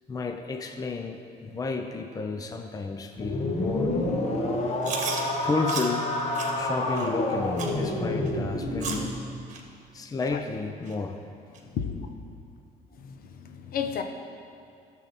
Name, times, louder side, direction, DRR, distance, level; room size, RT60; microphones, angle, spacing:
voice 1, 0.1-4.0 5.1-6.2 6.5-9.2 9.9-11.2, left 4 dB, 20° left, 5 dB, 0.6 m, -32 dB
sound 1, 3.2-9.1, left 2 dB, 40° left, 1.5 m, -28 dB
Chewing mastication, 4.8-5.2 5.7-5.9 6.3-6.5 6.9-7.1 7.6-7.8 8.3-8.4 8.8-9.1 9.5-9.6 10.2-10.3 10.9-11.0 11.5-11.6, right 5 dB, 45° right, 1.6 m, -33 dB
voice 2, 11.6-12.0 12.9-14.0, left 7 dB, 60° left, 6 dB, 0.9 m, -33 dB
13.5 x 7.4 x 4.3 m, 2.6 s
cardioid pair, 110°, 17 cm